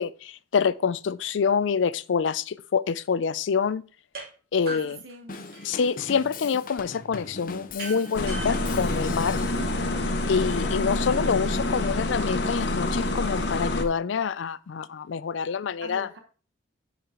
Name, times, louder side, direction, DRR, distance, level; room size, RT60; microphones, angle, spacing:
voice 1, 0.0-3.8 4.5-5.0 5.6-9.4 10.3-16.1, left 6 dB, 85° left, 0.4 m, -26 dB
sound 1, 4.1-4.3 4.7-5.9 7.8-9.8, right 2 dB, 50° right, 2.9 m, -40 dB
voice 2, 4.7-5.4 9.6-10.1 15.8-16.2, right 2 dB, 85° right, 1.2 m, -44 dB
Drum kit / Drum, 5.3-9.7, left 3 dB, 45° left, 0.7 m, -40 dB
sound 2, 8.1-13.8, left 2 dB, 70° left, 1.1 m, -27 dB
10.5 x 4.8 x 3.7 m
head